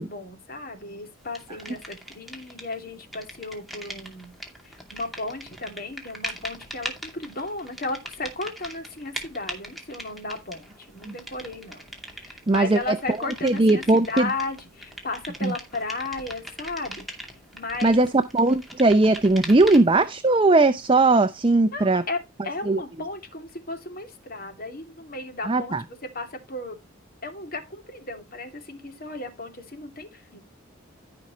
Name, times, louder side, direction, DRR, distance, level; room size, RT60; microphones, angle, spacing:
voice 1, 0.0-4.3 4.6-11.8 12.1-17.1 17.5-18.0 21.7-26.8 27.2-30.4, left 2 dB, 45° left, 2.8 m, -35 dB
sound 1, 1.4-2.8 3.0-20.0, right 1 dB, ahead, 2.5 m, -40 dB
voice 2, 12.5-13.0 13.4-14.3 15.4-15.5 17.8-22.0 22.7-22.8 25.4-25.8, right 2 dB, 25° right, 0.6 m, -19 dB
16.0 x 5.7 x 3.1 m
head